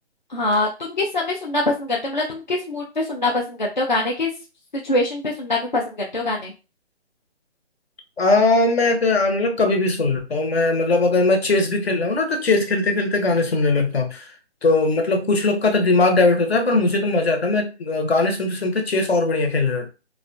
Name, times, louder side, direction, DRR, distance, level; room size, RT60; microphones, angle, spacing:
voice 1, 0.3-4.3 4.8-6.5, left 2 dB, 45° left, 0.4 m, -24 dB
voice 2, 8.2-14.3 14.6-19.9, left 3 dB, 65° left, 0.8 m, -20 dB
2.3 x 2.2 x 2.4 m
hypercardioid pair, 175°, 34 cm